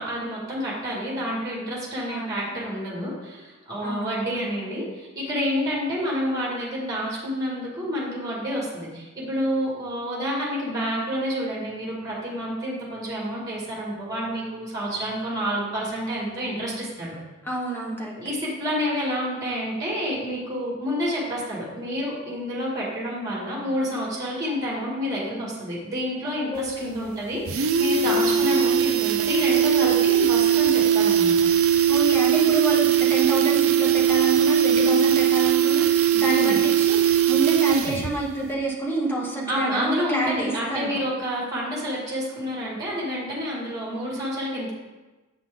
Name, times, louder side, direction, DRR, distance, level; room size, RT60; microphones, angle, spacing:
voice 1, 0.0-17.2 18.2-31.4 36.3-36.6 39.5-44.7, equal, 15° right, -4 dB, 2.0 m, -29 dB
voice 2, 2.1-2.5 3.8-4.2 17.4-18.1 26.5-27.1 28.2-28.4 31.9-41.0, right 2 dB, 10° left, -3 dB, 1.2 m, -28 dB
sound 1, 26.6-26.7 27.0-27.1 27.3-38.2 38.4-38.5, right 8 dB, 75° right, 0.5 m, -20 dB
7.8 x 5.9 x 3.8 m, 1.2 s
head